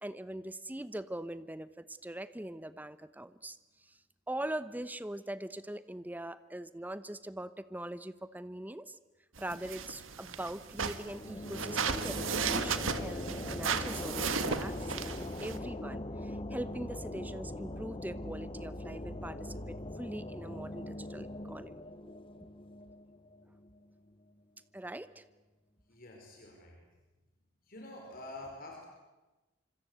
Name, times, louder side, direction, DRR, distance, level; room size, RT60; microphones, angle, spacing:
voice 1, 0.0-3.6 3.9-4.0 4.3-9.0 9.4-21.9 24.7-25.2, right 1 dB, 10° right, 14 dB, 0.9 m, -42 dB
sound 1, 9.4-15.6, right 6 dB, 85° right, 1.7 m, -35 dB
sound 2, 10.8-24.2, left 1 dB, 25° left, 1.1 m, -42 dB
sound 3, 12.1-19.9, equal, 60° right, 7.1 m, -48 dB
voice 2, 25.9-26.9 27.6-28.9, left 2 dB, 50° left, 1 dB, 5.1 m, -47 dB
26.0 x 26.0 x 8.1 m, 1.1 s
head